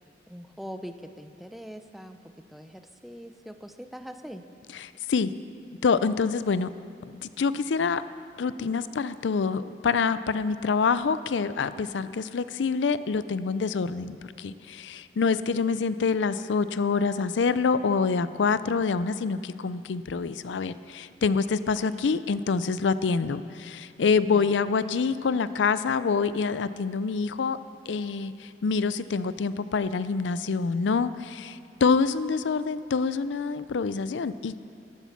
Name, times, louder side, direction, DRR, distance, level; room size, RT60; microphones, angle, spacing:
voice 1, 0.3-2.2 2.5-4.4 21.8-22.2 24.3-24.5, equal, ahead, 7 dB, 0.5 m, -42 dB
voice 2, 4.7-5.3 5.8-6.7 7.2-8.0 8.4-27.6 27.9-34.6, left 5 dB, 90° left, 14 dB, 0.5 m, -26 dB
14.0 x 12.5 x 5.9 m, 2.4 s
head